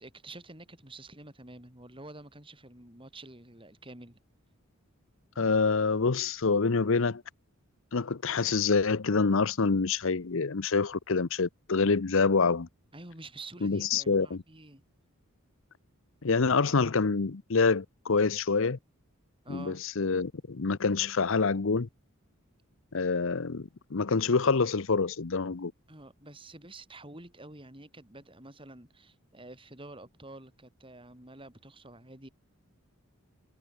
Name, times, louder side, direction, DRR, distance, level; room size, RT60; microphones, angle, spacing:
voice 1, 0.0-4.2 12.9-14.8 19.4-19.8 25.9-32.3, right 2 dB, 25° right, 6.0 m, -48 dB
voice 2, 5.4-7.2 7.9-12.7 13.6-14.4 16.2-18.8 19.5-21.9 22.9-25.7, left 4 dB, 60° left, 0.8 m, -26 dB
head